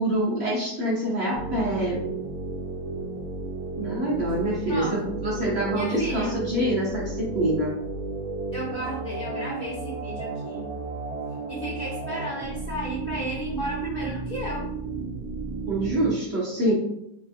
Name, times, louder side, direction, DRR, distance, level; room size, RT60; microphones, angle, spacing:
voice 1, 0.0-2.0 3.8-7.7 15.7-16.7, right 1 dB, 50° right, -4 dB, 0.9 m, -26 dB
sound 1, 1.3-16.1, right 3 dB, 75° right, 1.1 m, -33 dB
voice 2, 4.7-5.1 5.7-6.4 8.5-10.7 11.5-14.7, equal, 45° left, -5 dB, 0.8 m, -33 dB
3.3 x 3.3 x 2.6 m, 0.79 s
omnidirectional pair, 1.7 m